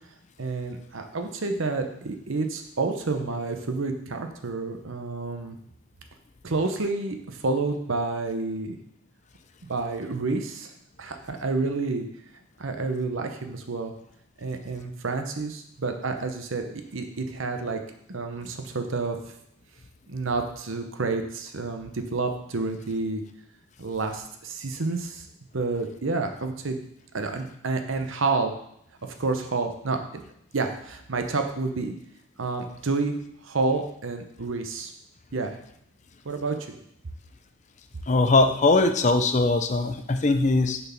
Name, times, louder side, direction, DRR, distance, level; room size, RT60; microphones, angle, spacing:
voice 1, 0.4-5.5 6.4-8.8 9.6-10.7 11.0-12.1 12.6-13.9 14.4-17.8 18.1-19.2 20.1-23.2 23.8-25.3 25.5-26.8 27.1-28.5 29.2-30.2 30.5-31.9 32.4-33.1 33.4-34.9 35.3-35.5 36.2-36.8, right 3 dB, 60° right, 6 dB, 0.8 m, -29 dB
voice 2, 38.1-40.8, left 3 dB, 30° left, 8 dB, 0.5 m, -21 dB
6.7 x 4.5 x 5.8 m, 0.71 s
head